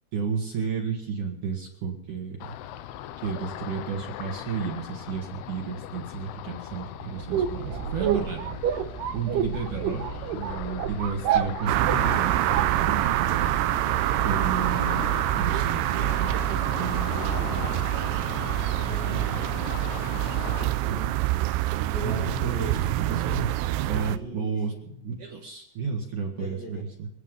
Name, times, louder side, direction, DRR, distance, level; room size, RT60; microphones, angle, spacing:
voice 1, 0.1-2.5 3.2-8.5 9.1-13.4 14.2-15.1 15.4-17.8 20.9-21.1 21.7-27.1, right 5 dB, 50° right, 1 dB, 2.9 m, -32 dB
Ocean, 2.4-20.7, left 12 dB, 75° left, 2.5 m, -39 dB
sound 1, 7.1-13.4, right 8 dB, 70° right, 3.0 m, -29 dB
sound 2, 11.7-24.2, right 15 dB, 85° right, 3.1 m, -26 dB
voice 2, 18.5-21.1 21.8-22.9 24.1-24.8 26.3-26.7, right 1 dB, 45° left, 0 dB, 4.2 m, -38 dB
26.5 x 9.4 x 5.4 m, 0.84 s
omnidirectional pair, 5.2 m